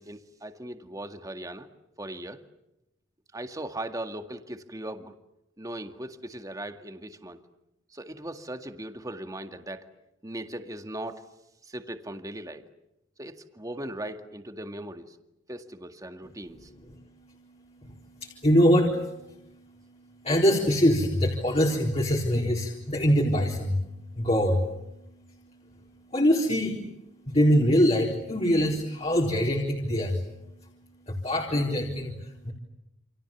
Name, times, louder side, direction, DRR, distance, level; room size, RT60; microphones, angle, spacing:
voice 1, 0.0-1.7 2.0-2.4 3.3-5.2 5.6-7.4 7.9-9.9 10.2-11.2 11.6-12.6 13.2-15.2 15.5-16.7, right 1 dB, 20° right, 6 dB, 2.0 m, -38 dB
voice 2, 16.9-30.3 31.1-32.5, equal, 35° left, -1 dB, 4.1 m, -25 dB
29.0 x 28.0 x 7.2 m, 0.88 s
head